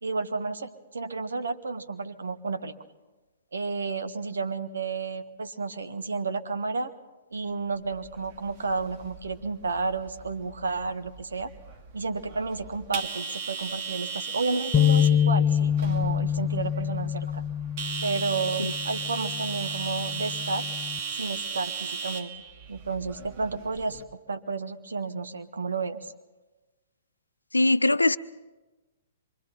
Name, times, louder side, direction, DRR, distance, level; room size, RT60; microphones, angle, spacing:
voice 1, 0.0-2.7 3.5-6.9 7.3-11.5 11.9-17.4 18.0-20.7 21.1-22.3 22.7-24.0 24.3-26.1, right 4 dB, 70° right, 8 dB, 1.6 m, -31 dB
sound 1, 7.9-24.0, right 5 dB, 40° right, 2.1 m, -37 dB
sound 2, 14.7-21.0, left 9 dB, 15° left, 0.8 m, -26 dB
voice 2, 27.5-28.2, left 2 dB, 85° left, 16 dB, 0.6 m, -21 dB
27.0 x 24.5 x 4.4 m, 1.2 s
figure-of-eight pair, 115°, 0 cm